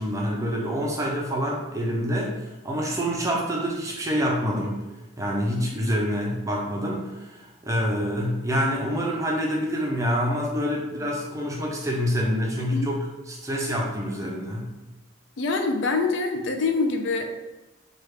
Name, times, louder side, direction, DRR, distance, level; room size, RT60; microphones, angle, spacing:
voice 1, 0.0-2.3 2.6-4.8 5.2-14.7, equal, 15° right, -2 dB, 0.4 m, -26 dB
voice 2, 5.6-5.9 12.6-12.9 15.4-17.4, left 3 dB, 65° left, 4 dB, 0.4 m, -26 dB
3.2 x 2.3 x 3.2 m, 1.1 s
head